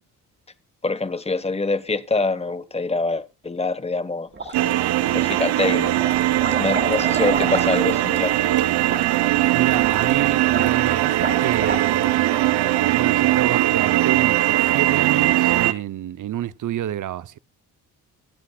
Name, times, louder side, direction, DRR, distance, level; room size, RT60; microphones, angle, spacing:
voice 1, 0.8-4.6 5.1-5.9 6.6-8.4, left 3 dB, 15° left, 1.3 m, -25 dB
sound 1, 4.3-5.1 5.5-12.2, right 2 dB, 30° right, 4.1 m, -31 dB
sound 2, 4.5-15.7, right 14 dB, 85° right, 0.9 m, -20 dB
voice 2, 9.5-12.3 12.9-17.4, right 11 dB, 50° right, 0.7 m, -28 dB
24.0 x 8.3 x 2.4 m
cardioid pair, 85°, 39 cm